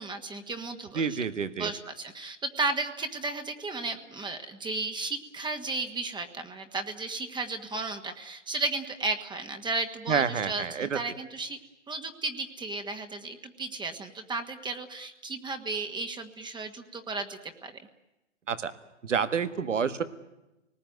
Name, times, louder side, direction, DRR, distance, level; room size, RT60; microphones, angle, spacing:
voice 1, 0.0-1.2 1.6-11.6 11.9-17.7, right 3 dB, 10° right, 6 dB, 1.5 m, -34 dB
voice 2, 0.9-1.7 10.1-11.0 18.5-18.7 19.0-20.0, right 6 dB, 90° right, 12 dB, 1.6 m, -28 dB
28.5 x 19.5 x 9.3 m, 0.99 s
hypercardioid pair, 120°, 36 cm